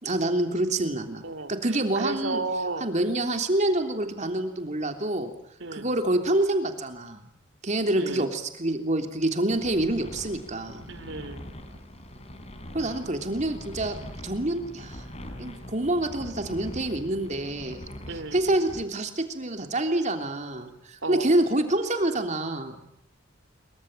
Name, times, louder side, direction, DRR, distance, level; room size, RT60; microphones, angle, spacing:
voice 1, 0.0-1.2 1.5-2.4 2.8-5.3 5.7-7.3 7.6-10.9 12.7-14.0 14.2-15.0 15.4-17.8 18.3-22.8, right 1 dB, 35° right, 6 dB, 3.3 m, -27 dB
voice 2, 2.0-2.9 5.6-5.9 8.0-8.3 10.9-11.5 18.0-18.4 21.0-21.3, right 2 dB, 65° right, 12 dB, 2.9 m, -33 dB
sound 1, 9.5-18.8, equal, 30° left, 4.0 m, -42 dB
27.0 x 24.0 x 9.1 m, 0.73 s
head